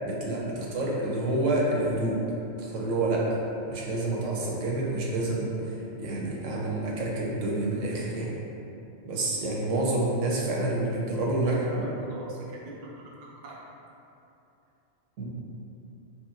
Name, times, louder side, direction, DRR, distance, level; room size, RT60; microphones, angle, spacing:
voice 1, 0.0-2.2 2.6-3.4 3.7-8.3 9.0-11.6 15.2-15.4, right 2 dB, 85° right, -3 dB, 1.0 m, -28 dB
voice 2, 11.4-13.1 13.4-13.6, right 2 dB, 65° right, -4 dB, 0.4 m, -39 dB
3.0 x 2.8 x 2.3 m, 2.8 s
omnidirectional pair, 1.3 m